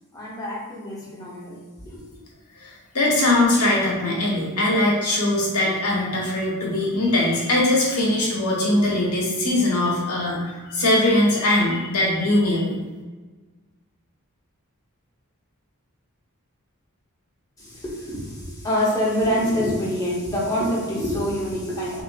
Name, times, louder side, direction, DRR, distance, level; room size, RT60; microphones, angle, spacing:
voice 1, 0.1-2.1 17.6-22.0, equal, 15° left, -5 dB, 1.0 m, -26 dB
voice 2, 2.6-12.8, left 1 dB, 85° left, -3 dB, 1.3 m, -21 dB
6.0 x 2.7 x 2.5 m, 1.3 s
head